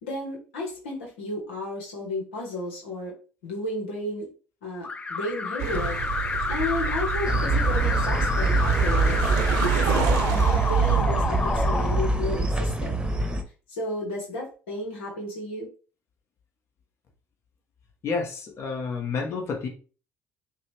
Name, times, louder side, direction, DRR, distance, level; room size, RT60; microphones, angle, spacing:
voice 1, 0.0-3.1 3.4-4.3 4.6-6.0 6.5-9.3 9.7-13.0 13.7-15.7, left 2 dB, 85° left, -2 dB, 1.3 m, -33 dB
Alarm, 4.8-12.7, left 3 dB, 20° left, 0.5 m, -30 dB
sound 1, 5.6-11.0, right 7 dB, 75° right, 0.8 m, -26 dB
sound 2, 7.2-13.4, right 2 dB, 15° right, 1.0 m, -26 dB
voice 2, 18.0-19.7, left 4 dB, 50° left, 1 dB, 1.5 m, -29 dB
5.8 x 2.4 x 3.2 m, 0.36 s
hypercardioid pair, 60°, 6 cm